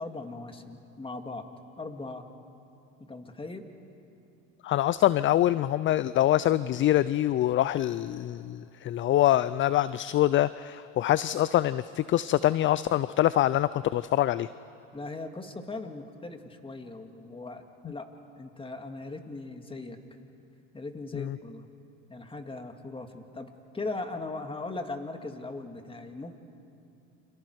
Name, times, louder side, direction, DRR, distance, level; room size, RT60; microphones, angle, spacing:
voice 1, 0.0-1.5 1.8-2.3 3.0-3.7 14.9-18.1 18.4-20.0 20.7-21.7 22.1-26.4, left 3 dB, 15° left, 6 dB, 2.1 m, -39 dB
voice 2, 4.6-14.5 21.1-21.4, left 13 dB, 35° left, 17 dB, 0.4 m, -25 dB
29.5 x 26.0 x 4.8 m, 2.7 s
supercardioid pair, 90°, 36 cm